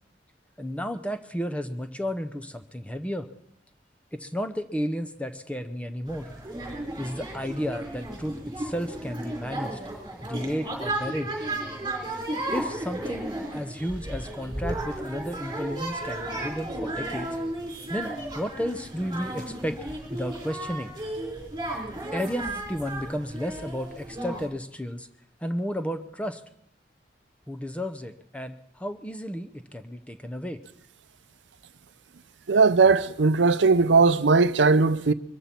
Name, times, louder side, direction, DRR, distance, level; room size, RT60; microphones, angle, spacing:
voice 1, 0.6-3.3 4.2-6.3 7.0-9.8 10.2-11.3 12.5-13.3 13.5-17.3 17.9-19.8 20.1-20.9 22.1-25.1 25.4-26.4 27.5-30.6, equal, 5° left, 0.7 m, -32 dB
sound 1, 6.1-24.5, right 1 dB, 20° right, 4.1 m, -34 dB
voice 2, 32.5-35.1, right 4 dB, 80° right, 0.6 m, -19 dB
23.0 x 14.0 x 4.4 m
head